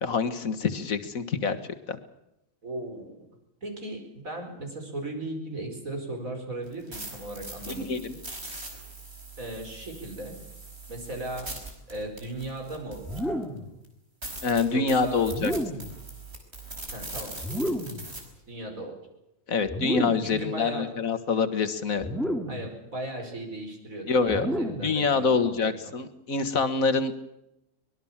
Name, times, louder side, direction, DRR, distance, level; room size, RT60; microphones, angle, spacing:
voice 1, 0.0-1.6 1.9-2.0 7.8-8.2 14.4-15.5 19.5-22.1 24.1-24.5 24.8-27.2, left 4 dB, 90° left, 10 dB, 2.0 m, -26 dB
voice 2, 2.6-3.3 3.6-7.9 9.4-10.4 10.9-11.5 11.9-13.3 14.7-15.3 16.9-17.3 18.5-19.0 19.9-20.9 22.5-25.9, right 1 dB, 90° right, 3 dB, 5.5 m, -37 dB
sound 1, 6.7-13.4 13.8-13.9 14.2-18.2, right 2 dB, 50° right, 5.3 m, -41 dB
sound 2, 13.0-13.7 15.2-16.0 17.4-18.1 19.7-20.4 22.0-22.7 24.3-25.0, equal, ahead, 2.5 m, -31 dB
23.5 x 20.5 x 7.3 m, 0.89 s
omnidirectional pair, 1.4 m